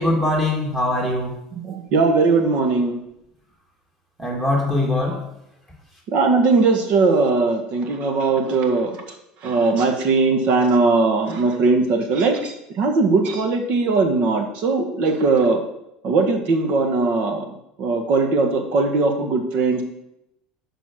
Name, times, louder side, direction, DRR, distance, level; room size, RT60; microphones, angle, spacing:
voice 1, 0.0-1.4 4.2-5.3, left 1 dB, 10° right, -2 dB, 2.8 m, -22 dB
voice 2, 1.5-3.0 6.1-9.0 9.4-15.6 16.0-19.8, right 3 dB, 55° right, 4 dB, 1.6 m, -19 dB
7.2 x 5.1 x 6.3 m, 0.82 s
supercardioid pair, 115°, 3 cm